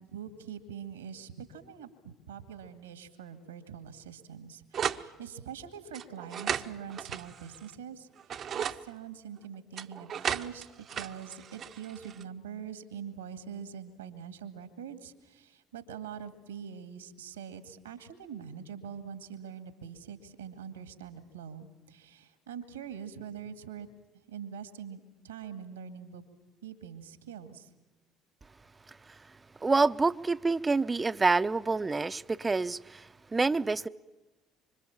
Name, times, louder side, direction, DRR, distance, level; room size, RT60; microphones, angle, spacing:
voice 1, 0.0-10.7 10.9-23.9 24.3-26.2 26.6-27.7, right 8 dB, 85° right, 2.2 m, -44 dB
sound 1, 4.7-5.1 5.9-7.7 8.2-8.8 9.8-12.2, right 8 dB, 50° right, 1.0 m, -35 dB
voice 2, 29.6-33.9, right 3 dB, 25° right, 0.8 m, -27 dB
26.5 x 25.5 x 7.4 m
hypercardioid pair, 55°, 0 cm